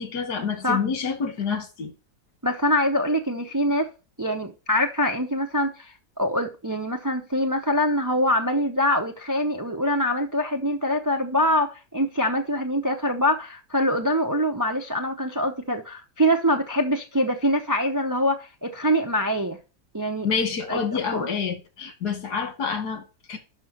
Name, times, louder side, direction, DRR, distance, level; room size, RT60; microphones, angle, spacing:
voice 1, 0.0-1.9 20.2-23.4, left 6 dB, 90° left, 2.1 m, -28 dB
voice 2, 2.4-3.9 4.2-19.6 19.9-20.3 20.7-20.8 21.1-21.3, equal, 30° right, 0.3 m, -24 dB
5.8 x 5.6 x 6.4 m
omnidirectional pair, 1.7 m